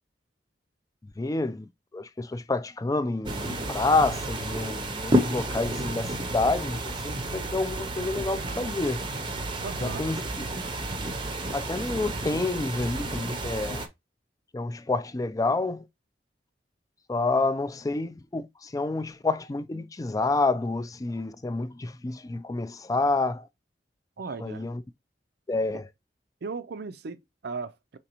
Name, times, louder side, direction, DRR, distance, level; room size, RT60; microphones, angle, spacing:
voice 1, 1.2-9.0 9.8-10.2 11.5-13.8 14.5-15.8 17.1-23.5 24.4-24.8 25.5-25.9, left 3 dB, 20° left, 0.4 m, -28 dB
sound 1, 3.2-13.9, right 1 dB, 30° right, 0.7 m, -31 dB
voice 2, 9.6-10.1 24.2-24.6 25.7-25.8 26.4-28.0, right 4 dB, 65° right, 0.5 m, -37 dB
5.1 x 3.4 x 2.9 m
head